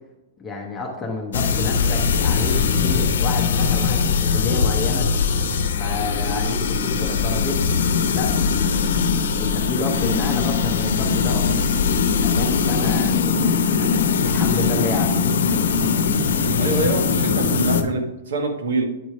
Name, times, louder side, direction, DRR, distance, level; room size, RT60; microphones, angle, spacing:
voice 1, 0.4-5.1 5.8-7.7 8.1-8.3 8.7-9.1 9.4-11.6 12.2-15.2, left 3 dB, 10° left, 0 dB, 0.8 m, -30 dB
sound 1, 1.3-17.8, left 5 dB, 85° left, 0.8 m, -20 dB
voice 2, 16.5-18.8, right 3 dB, 75° right, 3 dB, 1.5 m, -25 dB
9.2 x 3.1 x 4.5 m, 0.98 s
hypercardioid pair, 160°, 0 cm